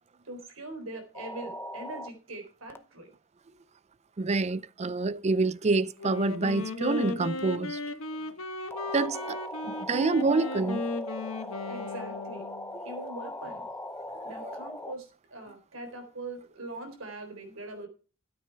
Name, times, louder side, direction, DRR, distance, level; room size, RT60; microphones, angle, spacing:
voice 1, 0.2-3.1 11.3-12.4 12.8-13.7 14.2-17.9, right 2 dB, 90° right, 3.8 m, -42 dB
sound 1, 1.1-2.1 2.7-2.8 8.7-15.0, left 1 dB, 10° left, 0.8 m, -39 dB
voice 2, 4.2-8.0 8.9-9.4 9.6-10.8 14.4-14.6, right 3 dB, 35° right, 0.5 m, -27 dB
Wind instrument woodwind instrument, 6.0-12.7, left 3 dB, 90° left, 1.3 m, -36 dB
13.0 x 8.8 x 4.5 m
head